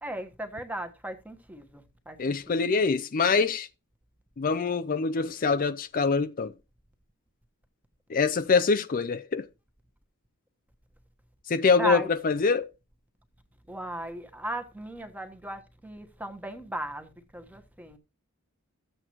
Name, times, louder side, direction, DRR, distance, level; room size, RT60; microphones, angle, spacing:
voice 1, 0.0-2.5 11.8-12.1 13.7-18.0, right 1 dB, 5° right, 1.2 m, -36 dB
voice 2, 2.2-3.7 4.4-6.5 8.1-9.5 11.5-12.7, left 4 dB, 40° left, 0.4 m, -24 dB
14.0 x 7.9 x 3.0 m
head